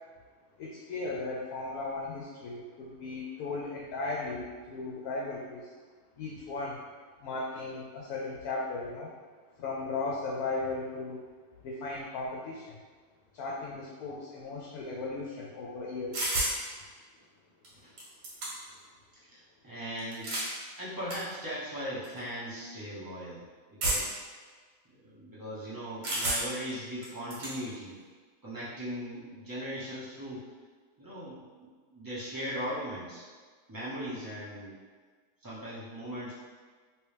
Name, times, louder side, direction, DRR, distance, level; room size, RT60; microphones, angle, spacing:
voice 1, 0.6-5.7 6.2-6.8 7.2-9.1 9.6-11.3 11.6-12.8 13.3-16.3, left 3 dB, 70° left, -3 dB, 1.0 m, -36 dB
sound 1, 16.1-16.6 17.6-17.7 18.0-18.8 20.0-20.5 21.1-21.2 22.0-22.2 23.8-24.2 26.0-26.6 27.0-27.5, right 1 dB, 90° right, 1.6 m, -31 dB
voice 2, 19.3-20.3 20.8-23.4 23.8-24.2 25.0-28.0 28.4-30.5 31.0-33.2 33.7-34.7 35.4-36.3, equal, 35° right, -9 dB, 0.3 m, -39 dB
3.1 x 3.0 x 3.3 m, 1.5 s
omnidirectional pair, 1.8 m